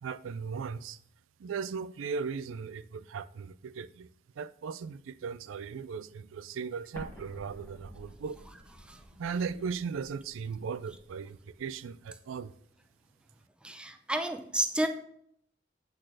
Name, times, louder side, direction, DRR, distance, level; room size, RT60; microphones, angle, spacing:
voice 1, 0.0-1.0 1.4-4.1 4.4-8.4 9.2-12.5, right 5 dB, 80° right, 0.4 m, -37 dB
Explosion, 6.9-11.7, equal, 10° left, 1.2 m, -51 dB
voice 2, 13.6-14.9, right 1 dB, 5° right, 0.6 m, -31 dB
8.6 x 4.1 x 6.1 m
head